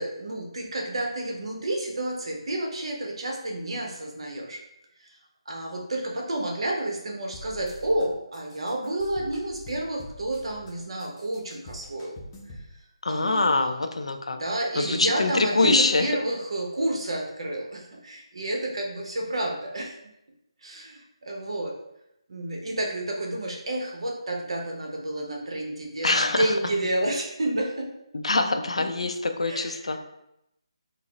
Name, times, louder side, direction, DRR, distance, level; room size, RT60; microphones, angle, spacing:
voice 1, 0.0-4.6 5.5-12.1 13.1-13.8 14.3-20.0 20.6-21.7 22.3-27.9 28.8-28.9 29.5-30.0, right 1 dB, 60° right, 0 dB, 0.8 m, -30 dB
sound 1, 7.3-8.0 8.3-10.7 11.0-12.7, left 1 dB, 20° left, 0.6 m, -45 dB
voice 2, 13.0-14.4 14.8-16.1 26.0-26.5 28.1-30.0, left 3 dB, 80° left, 6 dB, 0.4 m, -24 dB
3.8 x 2.0 x 3.0 m, 0.83 s
figure-of-eight pair, 155°, 3 cm